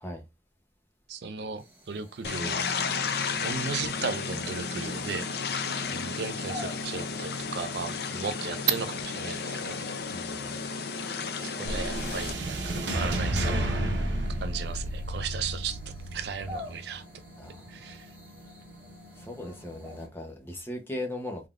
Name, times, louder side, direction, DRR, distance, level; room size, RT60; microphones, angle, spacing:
voice 1, 1.1-2.6 3.4-5.3 5.9-9.9 11.4-13.8 14.4-17.0 17.7-18.1, right 6 dB, 65° right, 0.4 m, -35 dB
sound 1, 1.6-20.1, left 1 dB, 10° right, 1.0 m, -50 dB
sound 2, 2.2-12.3, left 5 dB, 60° left, 0.5 m, -33 dB
voice 2, 10.1-10.5 17.4-17.7 19.2-21.5, left 1 dB, 10° left, 0.8 m, -38 dB
sound 3, 11.6-20.0, right 1 dB, 85° right, 1.0 m, -33 dB
3.7 x 3.5 x 2.4 m
head